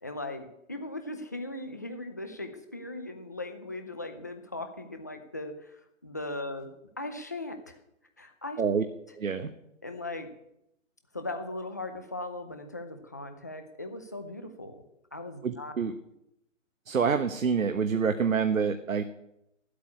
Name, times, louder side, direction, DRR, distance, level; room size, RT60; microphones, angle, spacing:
voice 1, 0.0-6.7 7.0-7.8 8.2-8.6 9.8-10.3 11.1-14.8 15.1-15.7, left 2 dB, 15° left, 7 dB, 0.5 m, -38 dB
voice 2, 9.2-9.5 15.4-15.9 16.9-19.0, right 6 dB, 85° right, 8 dB, 1.3 m, -27 dB
13.0 x 8.4 x 9.7 m, 0.83 s
hypercardioid pair, 160°, 39 cm